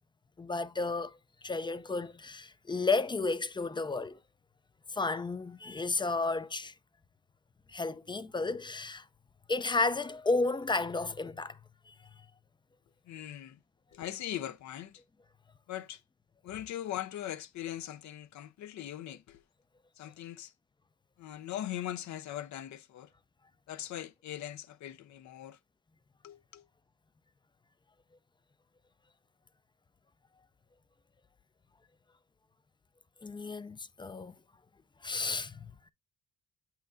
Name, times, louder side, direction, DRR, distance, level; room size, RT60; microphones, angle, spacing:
voice 1, 0.4-1.2 1.4-4.2 4.9-6.7 7.7-9.0 9.5-11.6 11.9-12.0 33.2-34.4 35.0-35.7, left 3 dB, 15° left, 0.4 m, -32 dB
voice 2, 13.1-13.6 13.9-15.0 15.7-16.0 16.4-19.4 20.0-20.5 21.2-23.1 23.7-25.6 26.2-26.6, left 12 dB, 70° left, 0.6 m, -40 dB
7.5 x 5.7 x 2.5 m
cardioid pair, 90°, 30 cm